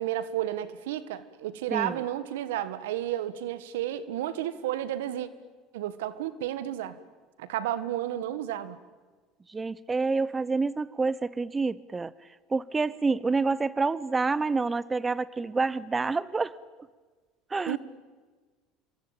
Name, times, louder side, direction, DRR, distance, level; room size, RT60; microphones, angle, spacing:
voice 1, 0.0-5.3 5.7-7.0 7.4-8.8 17.7-17.8, right 12 dB, 90° right, 15 dB, 1.5 m, -32 dB
voice 2, 9.5-12.1 12.5-16.5 17.5-17.8, right 4 dB, 20° right, 20 dB, 0.8 m, -28 dB
27.5 x 23.5 x 8.9 m, 1.4 s
supercardioid pair, 100°, 0 cm